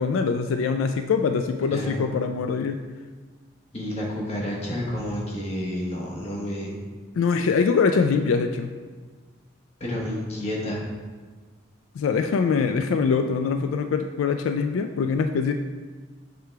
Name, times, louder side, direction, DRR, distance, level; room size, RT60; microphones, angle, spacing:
voice 1, 0.0-2.8 7.1-8.7 11.9-15.5, left 5 dB, 80° left, 7 dB, 0.3 m, -23 dB
voice 2, 3.7-6.8 9.8-10.8, equal, 30° left, -3 dB, 1.1 m, -30 dB
6.6 x 3.3 x 4.5 m, 1.4 s
head